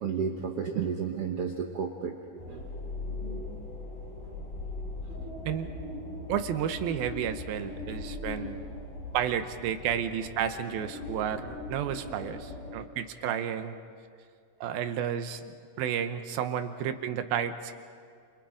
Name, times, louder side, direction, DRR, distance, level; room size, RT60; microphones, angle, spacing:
voice 1, 0.0-2.2 2.5-2.9, right 6 dB, 60° right, 2 dB, 1.6 m, -32 dB
sound 1, 2.4-12.8, left 2 dB, 75° left, 6.0 m, -39 dB
voice 2, 6.3-8.6 9.1-13.8 14.6-15.4 15.8-17.7, right 9 dB, 85° right, 8 dB, 2.8 m, -31 dB
29.0 x 28.5 x 5.1 m, 2.2 s
omnidirectional pair, 4.2 m